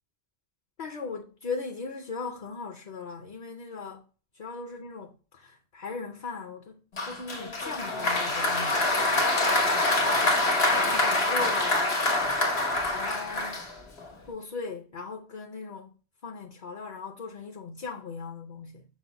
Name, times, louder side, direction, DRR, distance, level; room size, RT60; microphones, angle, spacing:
voice 1, 0.8-4.0 4.3-11.8 12.9-13.6 14.3-15.9 16.2-18.9, left 4 dB, 50° left, 0.6 m, -39 dB
Applause, 7.0-14.1, left 2 dB, 90° left, 1.3 m, -25 dB
6.1 x 2.1 x 3.9 m
omnidirectional pair, 1.0 m